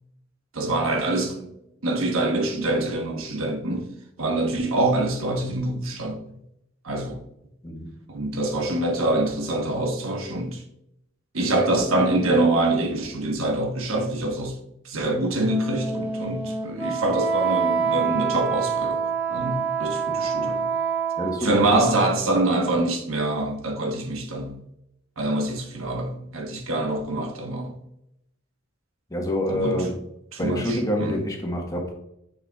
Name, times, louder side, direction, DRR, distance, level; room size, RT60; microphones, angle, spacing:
voice 1, 0.5-1.5 1.8-3.9 4.2-6.2 6.8-7.2 8.1-10.6 11.3-14.6 14.8-20.7 21.4-24.6 25.2-27.7 29.5-29.8 30.3-30.6 31.0-31.1, right 2 dB, 85° right, 1.2 m, -25 dB
Wind instrument woodwind instrument, 15.4-21.6, right 6 dB, 10° right, 1.5 m, -26 dB
voice 2, 21.2-21.8 29.1-29.9 30.4-31.9, equal, 15° left, 1.2 m, -27 dB
6.7 x 6.6 x 2.3 m
head